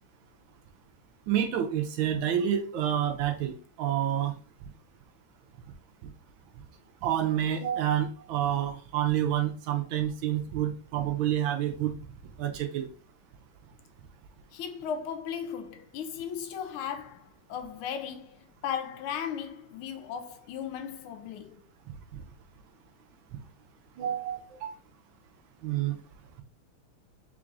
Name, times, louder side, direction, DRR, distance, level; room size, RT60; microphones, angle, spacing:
voice 1, 1.3-4.3 7.0-11.9 12.4-12.9 24.0-24.7 25.6-26.0, right 10 dB, 75° right, 1.3 m, -28 dB
voice 2, 14.5-21.6, left 8 dB, 80° left, 1.5 m, -36 dB
4.7 x 3.8 x 2.5 m
omnidirectional pair, 2.4 m